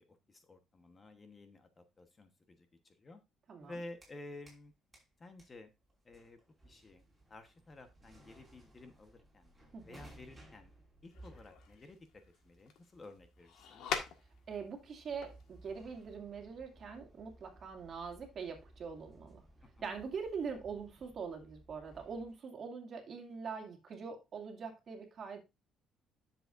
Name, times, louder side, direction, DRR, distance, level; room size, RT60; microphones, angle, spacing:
voice 1, 0.0-3.2 3.6-4.7 5.2-5.7 6.0-6.4 6.6-7.0 7.3-9.5 9.8-10.7 11.0-13.9 19.6-20.0, left 2 dB, 25° left, 1.1 m, -53 dB
sound 1, 3.6-4.7 4.9-22.4, right 1 dB, 10° right, 5.5 m, -60 dB
sound 2, 11.1-14.7 15.1-15.7, left 7 dB, 75° left, 1.6 m, -43 dB
voice 2, 14.5-19.4 19.8-25.4, right 5 dB, 45° right, 2.4 m, -43 dB
11.0 x 7.1 x 2.6 m
cardioid pair, 135°, 0 cm